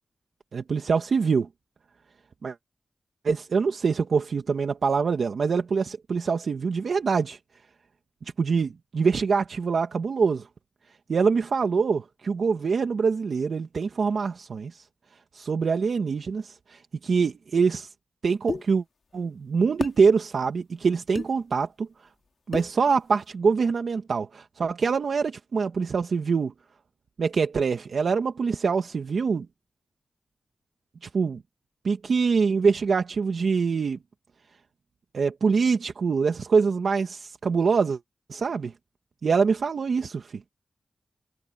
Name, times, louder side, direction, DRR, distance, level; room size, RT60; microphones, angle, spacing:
voice 1, 0.5-1.5 2.4-2.5 3.2-7.4 8.4-10.5 11.1-14.8 15.3-17.9 18.2-18.8 19.1-21.9 22.5-26.5 27.2-29.5 31.0-31.4 31.8-34.0 35.1-38.0 38.3-38.7 39.2-40.4, right 5 dB, 75° right, 1.4 m, -24 dB
sound 1, 18.5-18.7 19.8-20.0 21.2-21.3 22.5-22.8, left 4 dB, 60° left, 2.8 m, -30 dB
cardioid pair, 70°, 0 cm